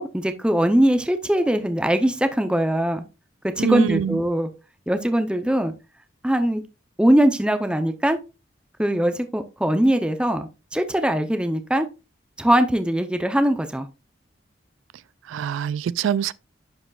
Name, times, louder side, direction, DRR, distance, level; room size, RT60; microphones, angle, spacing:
voice 1, 0.0-3.0 3.6-4.5 4.9-5.7 6.2-6.6 7.0-8.2 8.8-11.9 12.4-13.9, right 1 dB, 5° right, 0.6 m, -21 dB
voice 2, 3.6-4.2 15.3-16.3, right 8 dB, 85° right, 0.3 m, -24 dB
11.0 x 5.0 x 2.3 m
head